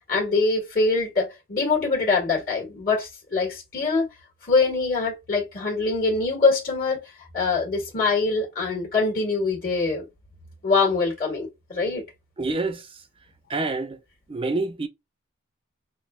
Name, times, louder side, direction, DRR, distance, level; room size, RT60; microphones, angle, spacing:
voice 1, 0.1-4.1 4.5-7.0 7.3-10.0 10.6-12.0, left 3 dB, 45° left, 1.6 m, -23 dB
voice 2, 12.4-12.9 13.5-14.0 14.3-14.9, right 3 dB, 25° right, 0.4 m, -27 dB
5.8 x 2.2 x 2.2 m
head